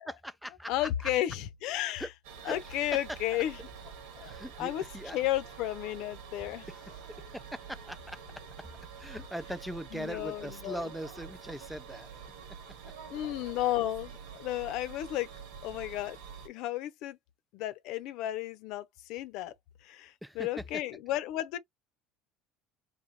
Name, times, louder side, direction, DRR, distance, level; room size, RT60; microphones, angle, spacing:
voice 1, 0.1-0.7 1.0-1.1 2.0-2.1 2.4-2.6 3.1-3.4 4.2-5.2 6.7-6.8 7.1-8.2 8.6-8.7 9.0-12.1 20.2-20.8, equal, ahead, 0.4 m, -40 dB
voice 2, 0.7-2.1 2.4-3.6 4.2-4.8 5.1-6.7 9.9-10.8 13.1-15.3 15.6-16.2 16.4-17.2 17.5-19.5 19.8-21.6, left 14 dB, 65° left, 0.7 m, -33 dB
sound 1, 2.2-16.5, right 6 dB, 85° right, 1.8 m, -47 dB
3.9 x 3.7 x 2.8 m
cardioid pair, 125°, 0 cm